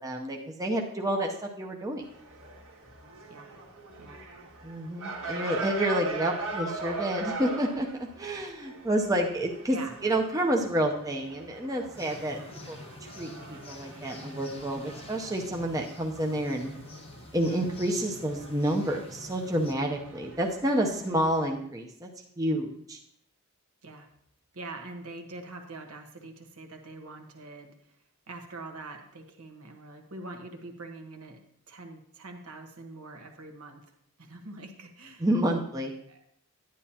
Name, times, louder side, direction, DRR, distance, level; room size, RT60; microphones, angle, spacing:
voice 1, 0.0-2.0 4.6-9.8 10.0-12.4 12.7-12.8 13.2-16.7 17.3-22.1 22.4-23.0 35.2-35.9, right 1 dB, 15° right, 1 dB, 0.7 m, -29 dB
sound 1, 2.0-21.5, right 3 dB, 60° right, 1.7 m, -42 dB
sound 2, 11.9-19.8, left 2 dB, 25° left, 0.8 m, -47 dB
voice 2, 20.9-21.2 23.8-24.1 24.5-28.0 28.3-31.4 31.7-33.8 34.2-35.3 36.1-36.2, right 2 dB, 80° right, 4 dB, 1.2 m, -44 dB
10.5 x 10.0 x 2.9 m, 0.69 s
head